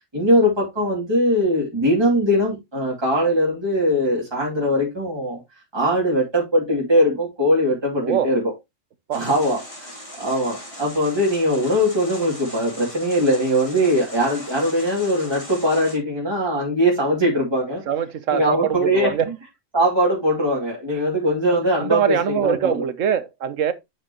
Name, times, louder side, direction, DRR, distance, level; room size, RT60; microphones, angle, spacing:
voice 1, 0.1-5.4 5.7-8.4 9.1-9.6 10.2-17.8 18.3-19.1 19.7-22.2 22.4-22.8, equal, 20° right, 2.7 m, -20 dB
voice 2, 8.0-8.3 9.1-9.2 17.9-19.3 20.9-21.0 21.8-23.7, right 8 dB, 80° right, 1.2 m, -23 dB
sound 1, 9.1-16.0, left 1 dB, 25° left, 2.6 m, -39 dB
8.2 x 6.6 x 2.9 m
omnidirectional pair, 1.3 m